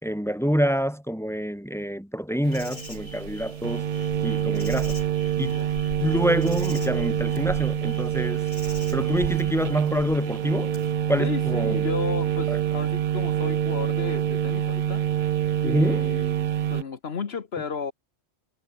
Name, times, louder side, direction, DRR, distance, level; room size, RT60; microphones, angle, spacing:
voice 1, 0.0-3.8 4.2-5.0 5.4-5.6 6.0-8.5 8.9-10.7 11.1-11.8 12.5-12.6 15.6-16.1, equal, ahead, 2.3 m, -26 dB
sound 1, 2.4-16.8, right 10 dB, 55° right, 0.5 m, -26 dB
Insect, 2.5-10.9, left 2 dB, 85° left, 6.0 m, -41 dB
voice 2, 11.2-15.0 15.6-17.9, left 6 dB, 65° left, 1.4 m, -33 dB
omnidirectional pair, 1.1 m